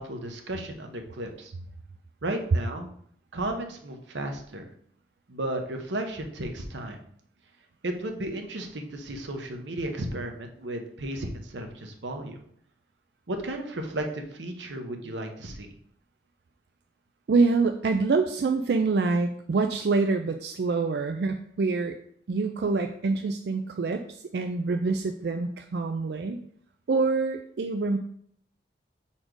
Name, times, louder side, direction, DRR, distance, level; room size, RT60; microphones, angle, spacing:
voice 1, 0.0-1.5 2.2-2.9 3.3-4.7 5.3-7.0 7.8-12.4 13.3-15.7, right 1 dB, 90° right, 5 dB, 0.9 m, -34 dB
voice 2, 17.3-22.0 22.3-26.4 26.9-28.0, right 4 dB, 65° right, 6 dB, 0.4 m, -26 dB
5.0 x 4.3 x 4.6 m, 0.64 s
head